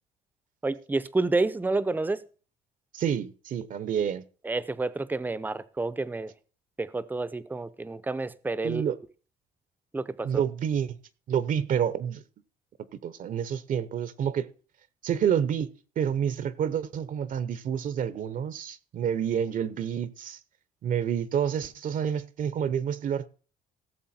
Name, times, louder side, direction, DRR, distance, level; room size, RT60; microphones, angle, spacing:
voice 1, 0.6-2.2 4.4-6.3 6.8-8.8 9.9-10.4, right 3 dB, 10° right, 0.6 m, -29 dB
voice 2, 2.9-4.2 8.6-9.0 10.2-11.0 11.3-12.2 13.0-14.5 15.0-15.7 16.0-20.4 20.8-23.3, right 8 dB, 50° right, 0.8 m, -28 dB
17.0 x 7.0 x 4.3 m
cardioid pair, 110°, 17 cm